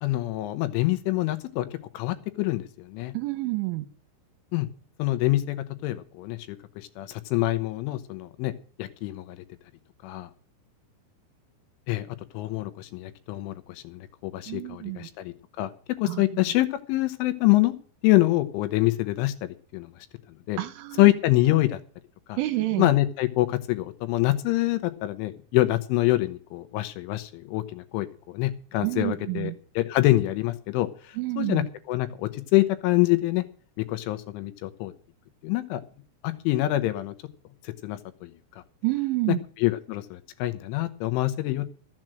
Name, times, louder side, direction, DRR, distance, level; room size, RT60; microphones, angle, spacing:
voice 1, 0.0-1.7 1.9-3.1 4.5-4.7 5.0-5.6 5.8-8.5 8.8-9.4 10.0-10.3 11.9-12.1 12.3-15.7 16.0-17.7 18.0-19.9 20.5-20.6 21.0-21.8 22.3-22.4 22.8-33.4 33.9-34.9 35.4-35.8 36.2-37.1 37.6-38.3 39.3-41.7, left 17 dB, 80° left, 3.0 m, -25 dB
voice 2, 3.1-3.9 14.5-15.1 16.1-16.2 20.6-21.1 22.4-22.9 28.8-29.6 31.2-31.7 38.8-39.4, right 20 dB, 80° right, 3.2 m, -28 dB
13.5 x 7.6 x 7.5 m
omnidirectional pair, 5.9 m